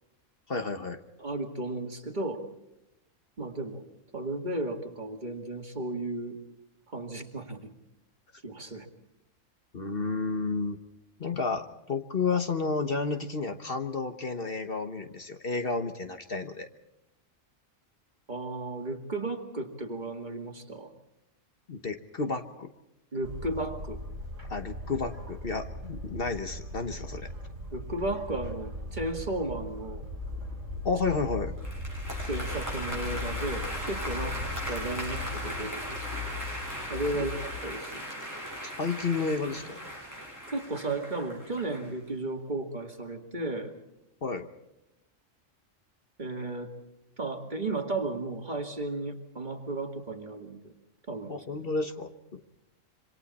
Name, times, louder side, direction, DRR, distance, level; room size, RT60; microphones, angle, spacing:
voice 1, 0.5-1.0 9.7-10.8 11.2-16.7 21.7-22.7 24.5-27.3 30.8-31.5 37.1-37.3 38.6-39.8 44.2-44.5 51.3-52.4, left 4 dB, 50° left, 7 dB, 1.3 m, -31 dB
voice 2, 1.2-2.4 3.4-3.8 4.1-6.4 6.9-7.7 8.4-8.9 18.3-20.9 23.1-24.0 27.7-30.0 32.3-36.1 36.9-38.1 40.5-43.7 46.2-46.7 47.2-50.7 51.1-51.3, right 2 dB, 35° right, 3 dB, 2.3 m, -34 dB
sound 1, 23.2-35.6, right 1 dB, 55° right, 3.1 m, -40 dB
sound 2, 30.2-37.6, left 6 dB, 75° left, 2.1 m, -40 dB
sound 3, 31.6-41.9, equal, 15° left, 7.7 m, -38 dB
27.0 x 25.0 x 4.2 m, 0.90 s
omnidirectional pair, 1.3 m